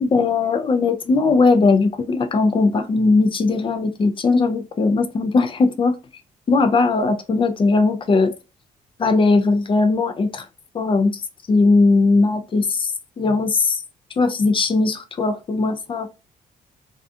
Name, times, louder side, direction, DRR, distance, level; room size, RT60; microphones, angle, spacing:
voice 1, 0.0-5.9 6.5-8.3 9.0-10.5 10.7-11.2 11.5-12.9 13.2-13.8 14.2-16.1, left 3 dB, 35° left, 0.4 m, -18 dB
2.4 x 2.3 x 2.5 m
cardioid pair, 80°, 15 cm